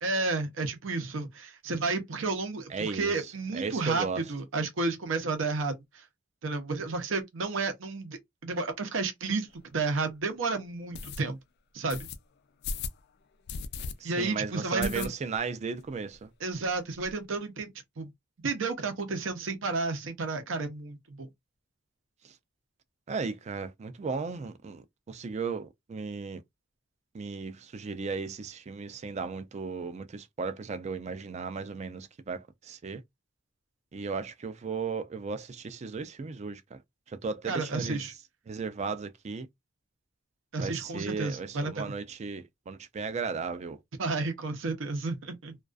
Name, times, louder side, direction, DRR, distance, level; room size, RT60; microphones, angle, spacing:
voice 1, 0.0-6.0 6.4-11.4 11.7-12.1 14.0-15.1 16.4-17.7 18.0-18.1 18.4-21.3 37.5-38.1 40.5-41.9 44.0-45.6, right 3 dB, 70° right, 0.6 m, -32 dB
voice 2, 2.7-3.2 3.5-4.2 14.0-16.3 23.1-26.4 27.1-33.0 33.9-36.8 37.1-38.1 38.5-39.5 40.6-43.8, right 5 dB, 35° right, 0.4 m, -35 dB
sound 1, 9.5-9.6 10.1-10.2 10.9-11.2 11.9-12.2 12.6-13.0 13.5-13.9 14.2-14.3 14.8-15.5 15.8-15.9 16.1-16.2 16.5-17.1, left 5 dB, 55° left, 0.3 m, -37 dB
2.3 x 2.3 x 2.4 m
head